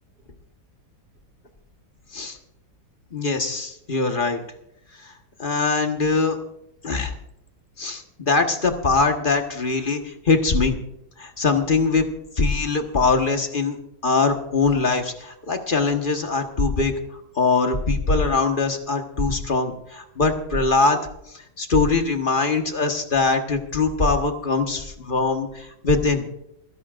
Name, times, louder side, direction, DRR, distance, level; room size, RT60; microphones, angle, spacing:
voice 1, 3.1-4.4 5.4-6.4 6.8-7.1 7.8-10.8 11.2-12.1 12.4-13.8 14.0-16.9 17.4-21.1 21.6-26.3, left 3 dB, 30° left, 4 dB, 1.4 m, -22 dB
28.5 x 11.0 x 2.5 m, 0.79 s
omnidirectional pair, 2.0 m